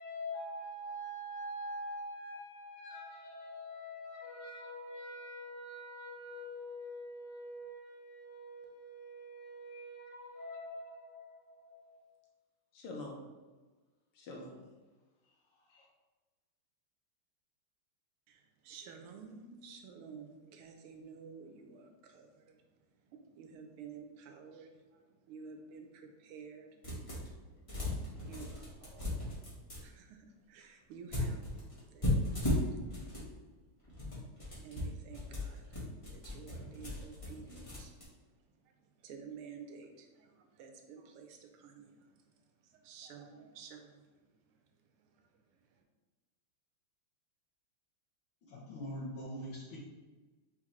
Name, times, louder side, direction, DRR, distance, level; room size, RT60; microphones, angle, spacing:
voice 1, 0.0-12.0 12.7-13.2 14.2-14.6 15.7-15.9, equal, 85° left, 0 dB, 1.8 m, -45 dB
voice 2, 18.3-22.6 23.1-24.7 25.3-26.7 28.2-29.2 29.8-32.8 34.6-35.7 36.1-37.9 39.0-42.0 42.8-44.1, right 6 dB, 80° right, 4 dB, 1.5 m, -51 dB
sound 1, 26.8-27.4 27.7-29.8 31.1-33.3 33.8-38.0, left 1 dB, 25° left, 0.8 m, -36 dB
voice 3, 48.5-49.8, equal, 70° left, -5 dB, 1.5 m, -42 dB
4.4 x 3.8 x 3.0 m, 1.3 s
omnidirectional pair, 2.4 m